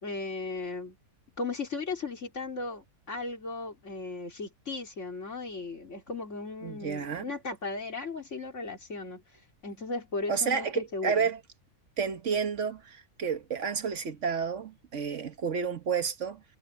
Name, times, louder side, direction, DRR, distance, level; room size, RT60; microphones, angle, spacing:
voice 1, 0.0-1.0 1.4-9.2 9.6-11.3, left 3 dB, 50° left, 3.8 m, -36 dB
voice 2, 6.6-7.2 10.3-11.4 12.0-16.4, right 6 dB, 55° right, 1.5 m, -30 dB
omnidirectional pair, 1.6 m